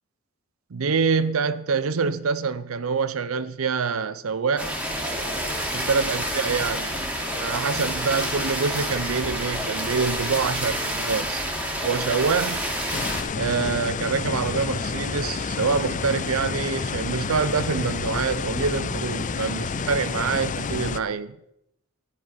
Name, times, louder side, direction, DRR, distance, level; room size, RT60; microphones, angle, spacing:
voice 1, 0.7-4.7 5.7-7.0 7.4-11.5 11.8-12.6 13.4-21.4, right 5 dB, 85° right, 0.6 m, -26 dB
sound 1, 4.6-13.2, equal, 5° right, 2.8 m, -28 dB
sound 2, 12.9-21.0, left 4 dB, 40° left, 0.5 m, -29 dB
13.5 x 10.5 x 5.6 m
head